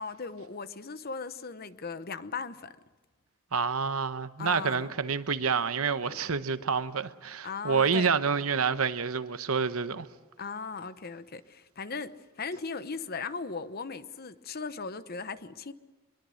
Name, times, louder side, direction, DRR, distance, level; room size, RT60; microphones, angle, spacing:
voice 1, 0.0-2.7 4.4-4.9 6.1-6.2 7.4-8.1 10.4-15.7, left 4 dB, 45° left, 0.9 m, -38 dB
voice 2, 3.5-10.1, right 5 dB, 75° right, 1.0 m, -28 dB
23.5 x 22.0 x 6.5 m
head